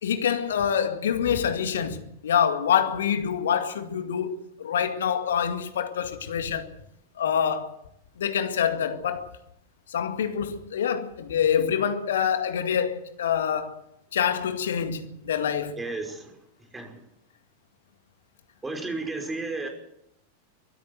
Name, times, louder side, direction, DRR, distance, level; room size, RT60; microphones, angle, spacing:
voice 1, 0.0-6.7 7.2-7.8 8.2-9.3 9.9-13.8 14.1-15.8, left 8 dB, 65° left, 2.1 m, -26 dB
voice 2, 15.8-16.4 16.7-17.0 18.6-19.7, right 3 dB, 10° right, 5.4 m, -33 dB
23.5 x 14.0 x 8.0 m
figure-of-eight pair, 90°, 0 cm